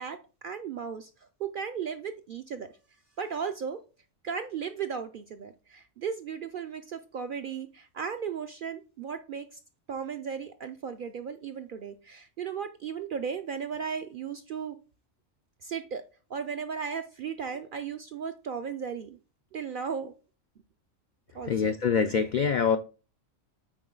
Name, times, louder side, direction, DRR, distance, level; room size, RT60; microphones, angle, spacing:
voice 1, 0.0-2.7 3.2-3.8 4.2-9.6 9.9-14.8 15.6-16.0 16.3-19.2 19.5-20.1 21.3-21.7, right 6 dB, 65° right, 0.5 m, -36 dB
voice 2, 21.5-22.8, left 6 dB, 75° left, 0.4 m, -25 dB
9.1 x 3.9 x 3.8 m
omnidirectional pair, 1.3 m